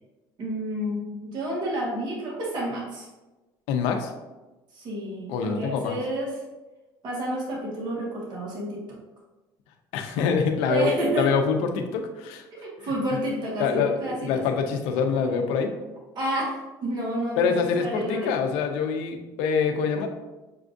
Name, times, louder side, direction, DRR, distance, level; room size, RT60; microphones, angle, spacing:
voice 1, 0.4-3.1 4.7-6.4 7.0-8.8 10.6-11.3 12.5-14.4 16.1-18.3, right 1 dB, 50° right, -4 dB, 1.3 m, -30 dB
voice 2, 3.7-4.1 5.3-5.9 9.9-10.9 11.2-12.4 12.8-12.9 13.6-15.7 17.4-20.1, left 6 dB, 80° left, 4 dB, 0.6 m, -25 dB
6.7 x 2.4 x 2.6 m, 1.1 s
supercardioid pair, 95°, 9 cm